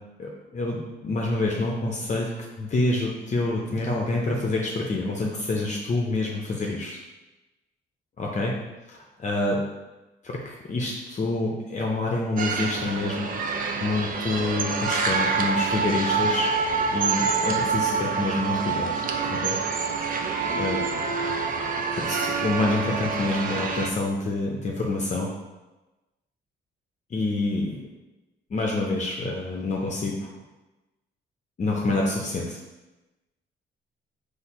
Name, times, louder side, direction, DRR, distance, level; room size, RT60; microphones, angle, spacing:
voice 1, 0.2-2.3 2.6-7.0 8.2-8.5 8.9-9.6 10.2-13.5 13.8-16.5 16.9-18.9 19.3-19.6 20.5-20.8 22.0-25.3 27.1-27.8 28.5-30.3 31.6-32.6, left 2 dB, 35° left, -1 dB, 0.6 m, -27 dB
sound 1, 12.4-23.9, right 5 dB, 45° right, 0.5 m, -26 dB
4.1 x 2.7 x 4.2 m, 1.1 s
cardioid pair, 90°, 20 cm